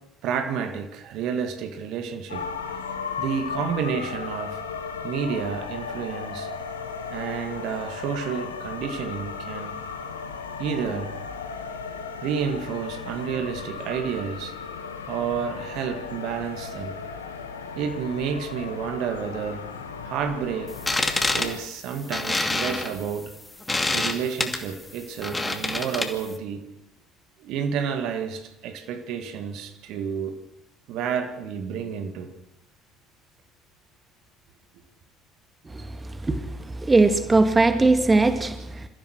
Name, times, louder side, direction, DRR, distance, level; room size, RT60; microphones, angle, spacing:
voice 1, 0.2-2.5 3.2-4.6 5.0-6.5 7.1-9.8 10.6-11.1 12.2-14.6 15.1-16.9 17.8-19.7 20.0-23.3 23.9-26.6 27.4-30.4 30.9-32.3, right 7 dB, 55° right, 1.9 m, -30 dB
sound 1, 2.3-21.6, left 5 dB, 80° left, 1.5 m, -35 dB
sound 2, 20.7-26.4, left 2 dB, 15° left, 2.6 m, -27 dB
voice 2, 36.8-38.9, right 3 dB, 20° right, 1.9 m, -20 dB
27.5 x 15.0 x 6.4 m
figure-of-eight pair, 60°, 0 cm